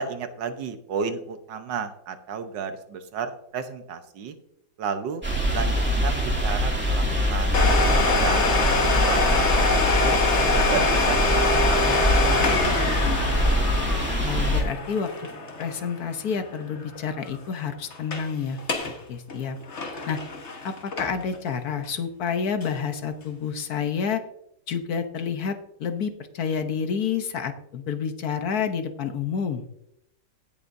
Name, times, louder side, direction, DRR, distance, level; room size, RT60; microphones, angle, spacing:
voice 1, 0.0-4.4 4.8-5.2 5.5-7.6 8.0-8.5 8.9-9.6 10.0-10.2 10.5-12.7, right 6 dB, 90° right, 8 dB, 1.7 m, -32 dB
sound 1, 5.2-14.6, equal, 5° right, 2.2 m, -23 dB
Domestic sounds home sounds, 7.5-17.0 17.2-17.3 17.9-18.3 18.6-19.0 19.3-21.4 21.8-21.9 22.6-22.7, left 3 dB, 45° left, 1.5 m, -25 dB
voice 2, 14.2-15.1 15.6-18.6 19.1-19.6 20.1-20.2 20.6-24.2 24.7-29.6, left 6 dB, 65° left, 8 dB, 1.3 m, -29 dB
17.0 x 7.1 x 2.6 m, 0.78 s
omnidirectional pair, 1.9 m